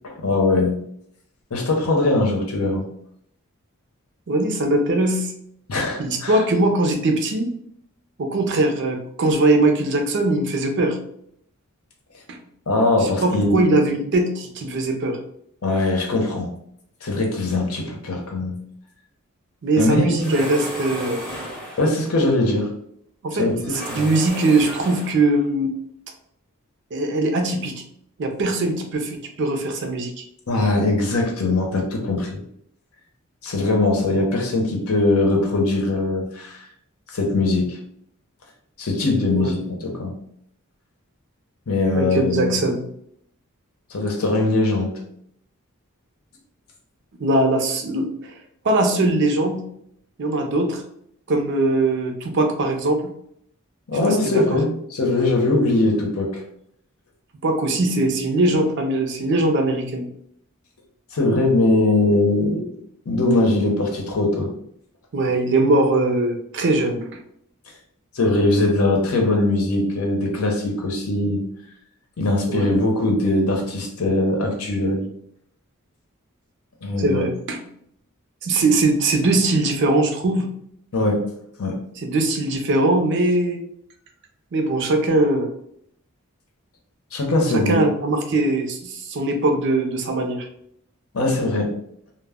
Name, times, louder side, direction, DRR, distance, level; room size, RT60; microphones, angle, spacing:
voice 1, 0.0-0.8 1.5-2.8 5.7-6.4 12.7-13.6 15.6-16.5 17.0-18.6 19.8-20.4 21.8-22.7 23.4-24.1 30.5-32.4 33.4-36.7 37.1-37.8 38.8-40.1 41.7-42.6 43.9-45.0 53.9-56.4 61.1-62.6 63.1-64.5 68.1-71.4 72.2-75.1 76.8-77.2 80.9-81.2 81.6-81.8 87.1-87.8 91.1-91.7, left 2 dB, 80° left, 1 dB, 0.7 m, -21 dB
voice 2, 4.3-5.3 6.0-7.5 8.2-11.0 12.3-12.4 13.0-15.2 19.6-21.2 23.2-25.7 26.9-27.8 28.2-30.2 39.4-39.5 41.9-42.8 47.2-48.3 48.6-49.6 50.2-50.8 51.3-53.1 54.0-54.6 57.4-60.1 65.1-67.1 72.5-72.7 77.0-77.6 78.4-80.5 82.0-83.6 84.5-85.5 87.5-90.5, right 2 dB, 55° right, 4 dB, 0.5 m, -21 dB
sound 1, 20.2-22.0 23.6-25.4, equal, 5° left, 0.6 m, -33 dB
2.1 x 2.0 x 3.5 m, 0.69 s
head